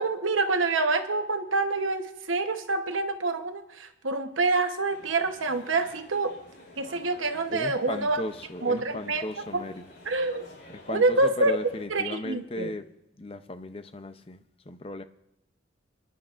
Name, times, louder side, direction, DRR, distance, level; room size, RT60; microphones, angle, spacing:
voice 1, 0.0-6.4 6.8-8.2 8.6-9.6 10.0-10.5 10.9-11.5 11.9-12.7, right 3 dB, 85° right, 1.1 m, -27 dB
sound 1, 4.9-11.8, left 1 dB, 55° left, 5.2 m, -50 dB
voice 2, 7.5-9.9 10.7-12.8 13.2-14.4 14.7-15.0, left 2 dB, 30° left, 0.6 m, -36 dB
26.0 x 11.0 x 2.5 m
head